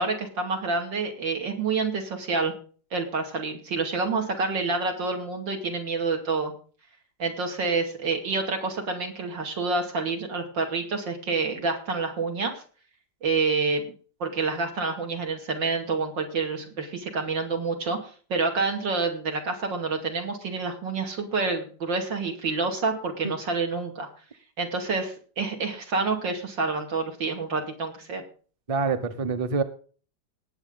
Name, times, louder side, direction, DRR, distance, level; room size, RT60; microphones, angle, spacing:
voice 1, 0.0-2.5 2.9-6.5 7.2-12.6 13.2-13.8 14.2-24.1 24.6-28.2, right 4 dB, 85° right, 3 dB, 3.2 m, -28 dB
voice 2, 28.7-29.6, right 4 dB, 25° right, 10 dB, 0.8 m, -26 dB
19.0 x 7.8 x 3.9 m, 0.40 s
omnidirectional pair, 2.0 m